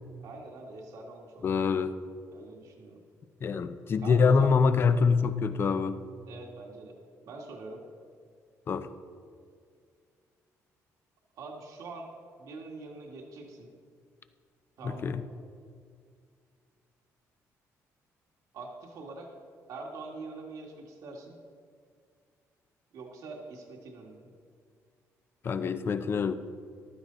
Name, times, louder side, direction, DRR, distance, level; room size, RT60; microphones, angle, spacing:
voice 1, 0.2-1.8 2.3-3.0 4.0-4.5 6.3-7.0 7.2-7.8 11.3-12.1 12.4-13.7 14.8-15.2 18.5-19.3 19.7-21.3 22.9-24.3, right 3 dB, 70° right, 0 dB, 1.9 m, -44 dB
voice 2, 1.4-2.0 3.4-6.0 8.7-8.9 14.8-15.2 25.4-26.3, left 5 dB, 40° left, 11 dB, 0.6 m, -25 dB
14.5 x 12.0 x 4.0 m, 2.2 s
cardioid pair, 130°, 6 cm